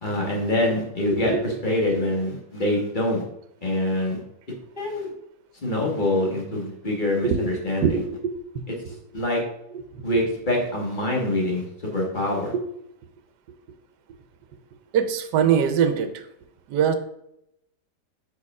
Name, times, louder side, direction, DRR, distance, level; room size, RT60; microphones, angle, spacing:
voice 1, 0.0-3.2 3.6-4.2 4.8-5.1 5.6-8.0 9.1-9.4 10.0-12.5, left 1 dB, 30° left, -1 dB, 1.5 m, -25 dB
voice 2, 1.1-1.4 7.2-7.5 7.8-8.6 9.9-10.0 12.5-12.6 14.9-16.2 16.7-16.9, right 7 dB, 75° right, 8 dB, 1.3 m, -23 dB
4.8 x 4.6 x 4.8 m, 0.78 s
omnidirectional pair, 1.9 m